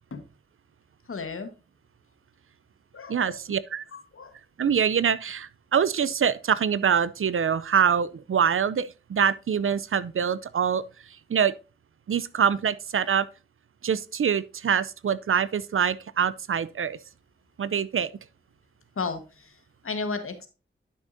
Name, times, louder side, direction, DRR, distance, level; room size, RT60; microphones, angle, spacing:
voice 1, 1.1-1.5 2.9-3.4 3.9-4.3 18.9-20.5, left 4 dB, 85° left, 1.4 m, -34 dB
voice 2, 3.1-3.8 4.6-10.8 11.3-11.5 12.1-13.3 13.8-17.0 17.6-18.1, right 7 dB, 75° right, 0.5 m, -24 dB
11.0 x 6.3 x 2.6 m
wide cardioid pair, 80°, 21 cm